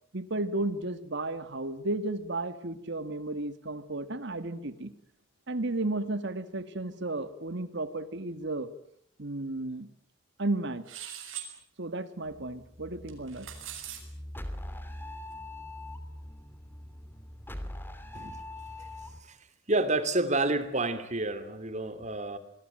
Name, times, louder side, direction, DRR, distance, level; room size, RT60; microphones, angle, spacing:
voice 1, 0.1-4.9 5.5-8.7 9.2-9.9 10.4-10.8 11.8-13.5, right 2 dB, 60° right, 12 dB, 1.8 m, -33 dB
sound 1, 10.9-11.5 13.1-14.0, right 10 dB, 85° right, 6.6 m, -41 dB
sound 2, 12.3-19.2, left 1 dB, 10° left, 2.8 m, -42 dB
voice 2, 19.7-22.4, right 2 dB, 35° right, 12 dB, 2.8 m, -29 dB
27.0 x 21.0 x 9.0 m, 0.67 s
head